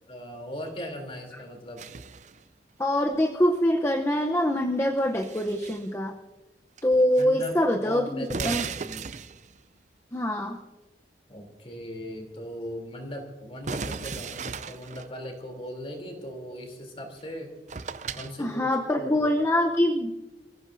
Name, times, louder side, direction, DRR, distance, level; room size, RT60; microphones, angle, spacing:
voice 1, 0.0-1.9 7.2-9.1 11.3-17.5 18.1-18.7 19.0-19.3, equal, 30° left, 3 dB, 3.4 m, -38 dB
sound 1, 1.8-2.4 4.8-5.9 6.8-7.2 7.5-7.6 8.2-9.6 13.6-15.1 17.2-17.3 17.7-18.3, right 5 dB, 40° right, 0.5 m, -36 dB
voice 2, 2.8-6.2 6.8-8.6 10.1-10.6 18.4-20.2, left 1 dB, 15° left, 2 dB, 0.8 m, -24 dB
29.0 x 15.5 x 2.7 m, 1.2 s
head